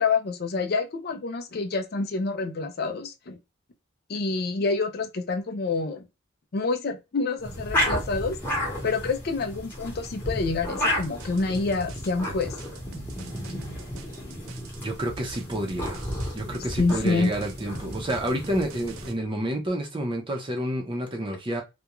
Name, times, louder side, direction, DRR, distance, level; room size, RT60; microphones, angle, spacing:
voice 1, 0.0-3.4 4.1-6.1 6.5-8.4 8.8-12.6 16.8-17.3, left 4 dB, 50° left, 0.4 m, -27 dB
sound 1, 7.4-19.1, left 1 dB, 10° left, 0.9 m, -32 dB
sound 2, 10.9-19.1, right 5 dB, 75° right, 0.4 m, -45 dB
voice 2, 14.8-16.0 16.3-21.6, right 1 dB, 25° right, 0.6 m, -29 dB
2.4 x 2.2 x 2.9 m
head